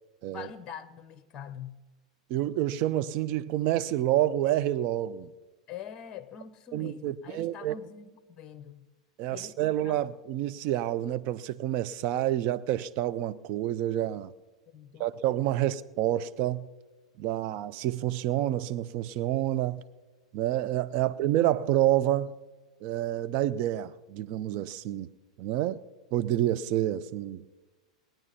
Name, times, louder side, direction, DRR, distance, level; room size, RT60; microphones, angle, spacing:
voice 1, 0.3-1.8 5.7-8.8 9.3-10.0 14.7-15.1 20.9-21.1, left 8 dB, 30° left, 0.8 m, -44 dB
voice 2, 2.3-5.3 6.7-7.8 9.2-14.3 15.0-16.7 17.2-19.8 20.3-22.4 22.8-25.1 25.4-25.8 26.1-27.4, right 13 dB, 45° right, 0.5 m, -28 dB
18.5 x 9.0 x 5.7 m
figure-of-eight pair, 90°, 3 cm